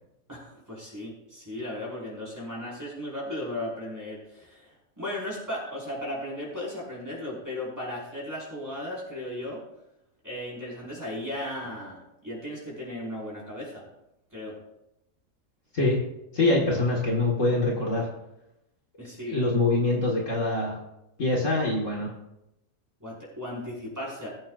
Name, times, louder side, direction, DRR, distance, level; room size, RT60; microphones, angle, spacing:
voice 1, 0.3-9.6 10.2-13.8 14.3-14.5 19.0-19.4 23.0-24.3, left 1 dB, 10° right, -6 dB, 5.3 m, -36 dB
voice 2, 16.3-18.1 19.3-20.8 21.2-22.1, left 2 dB, 55° left, -2 dB, 2.2 m, -24 dB
21.0 x 8.8 x 2.5 m, 0.85 s
omnidirectional pair, 1.6 m